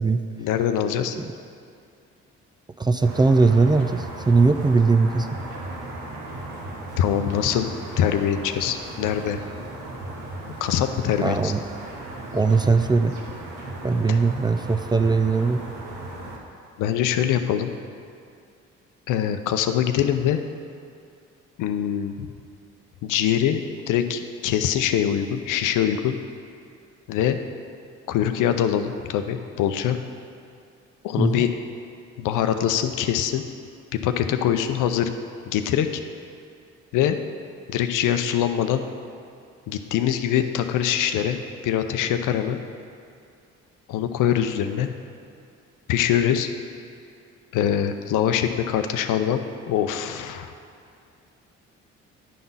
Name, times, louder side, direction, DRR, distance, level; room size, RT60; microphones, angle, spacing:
voice 1, 0.4-1.2 7.0-7.7 8.0-9.4 10.6-11.5 14.1-14.2 16.8-17.7 19.1-20.4 21.6-22.3 23.0-26.2 27.1-27.4 28.1-30.0 31.0-31.5 32.2-33.4 34.0-35.1 35.5-36.0 36.9-37.2 37.7-38.8 39.7-41.4 41.6-42.6 43.9-44.9 45.9-46.5 47.5-49.4 49.7-50.5, left 10 dB, 75° left, 8 dB, 0.6 m, -23 dB
voice 2, 2.8-5.4 11.2-11.6 12.3-13.2 13.8-15.6 31.2-31.4, right 4 dB, 15° right, 8 dB, 0.3 m, -20 dB
sound 1, 3.0-16.4, right 2 dB, 80° right, 1.2 m, -36 dB
10.0 x 3.9 x 5.5 m, 2.4 s
supercardioid pair, 65°, 31 cm